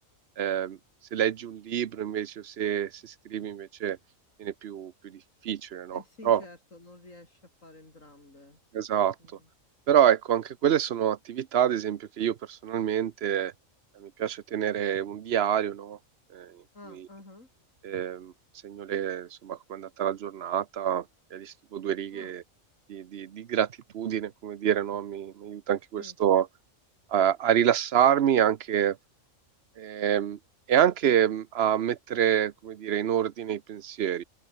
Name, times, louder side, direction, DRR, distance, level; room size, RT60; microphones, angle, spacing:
voice 1, 0.4-0.8 1.1-4.0 4.4-6.4 8.7-9.1 9.9-13.5 14.0-16.0 16.3-16.6 17.8-18.3 18.6-21.0 21.3-22.4 22.9-23.7 23.9-26.5 27.1-29.0 29.8-30.4 30.7-34.2, right 9 dB, 55° right, 0.9 m, -27 dB
voice 2, 5.9-8.6 9.2-9.5 16.7-17.5 22.1-22.4 26.0-26.2, left 2 dB, 70° left, 6.4 m, -50 dB
omnidirectional pair, 1.4 m